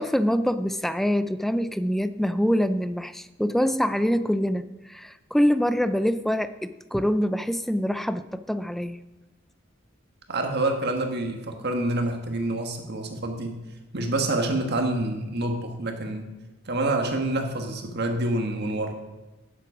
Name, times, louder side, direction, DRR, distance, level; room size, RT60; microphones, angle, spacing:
voice 1, 0.0-9.0, equal, ahead, 12 dB, 0.3 m, -25 dB
voice 2, 10.3-13.6 13.9-16.3 16.6-18.9, right 2 dB, 55° right, 4 dB, 1.5 m, -27 dB
11.5 x 7.6 x 5.0 m, 1.1 s
head